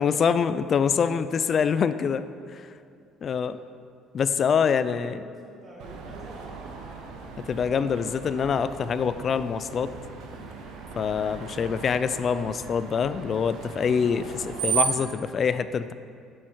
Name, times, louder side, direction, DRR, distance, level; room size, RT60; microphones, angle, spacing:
voice 1, 0.0-2.2 2.5-2.7 3.2-3.6 4.1-5.2 7.5-9.9 11.0-15.9, left 6 dB, 40° left, 13 dB, 0.3 m, -25 dB
voice 2, 1.1-1.6 4.2-6.7 11.1-11.4, right 1 dB, 25° right, -3 dB, 2.0 m, -47 dB
Screech, 5.8-15.1, right 6 dB, 80° right, 1.0 m, -35 dB
9.8 x 6.4 x 4.6 m, 2.3 s
cardioid pair, 130°, 0 cm